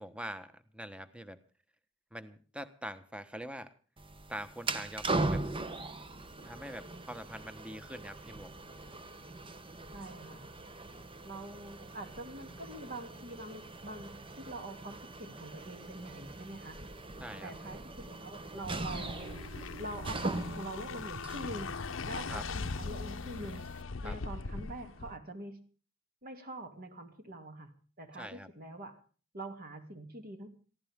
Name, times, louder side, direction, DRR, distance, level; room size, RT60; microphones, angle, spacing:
voice 1, 0.0-1.4 2.1-3.7 4.3-5.5 6.4-8.5 17.2-17.5 22.3-22.4 24.0-24.2 28.2-28.5, equal, 5° right, 11 dB, 1.2 m, -44 dB
sound 1, 4.0-23.8, right 2 dB, 25° right, 1.0 m, -41 dB
voice 2, 9.9-10.5 11.2-16.8 17.4-19.2 19.8-21.7 22.0-23.6 24.0-25.6 26.2-27.7 28.0-29.0 29.3-30.6, right 1 dB, 50° right, 6 dB, 2.7 m, -44 dB
sound 2, 18.9-25.2, left 4 dB, 75° left, 0.8 m, -40 dB
22.5 x 15.5 x 3.6 m, 0.39 s
head